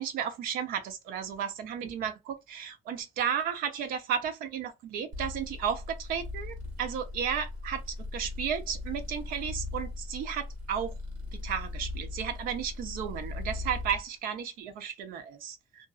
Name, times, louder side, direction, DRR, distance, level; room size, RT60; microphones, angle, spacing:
voice 1, 0.0-10.9 11.4-15.9, right 8 dB, 90° right, 0.7 m, -33 dB
sound 1, 5.1-14.0, left 2 dB, 70° right, 1.2 m, -39 dB
2.6 x 2.4 x 2.4 m
cardioid pair, 165°, 14 cm